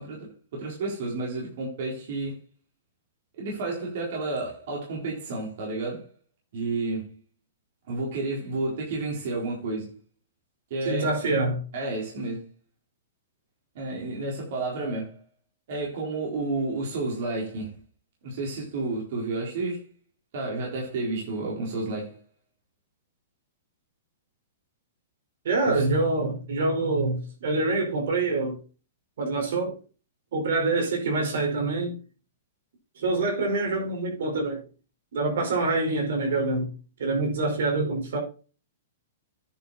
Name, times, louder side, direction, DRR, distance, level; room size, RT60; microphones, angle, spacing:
voice 1, 0.0-2.4 3.4-6.1 6.5-7.1 7.9-10.0 10.7-11.1 11.7-12.4 13.7-15.2 15.7-17.7 18.2-19.8 20.3-22.2 25.7-25.8, right 2 dB, 50° right, 4.2 m, -31 dB
voice 2, 10.8-11.6 25.4-28.6 29.2-29.8 30.3-32.0 33.0-34.6 35.1-36.7 37.0-38.2, right 3 dB, 65° right, 4.8 m, -26 dB
10.0 x 6.5 x 4.2 m
hypercardioid pair, 170°, 0 cm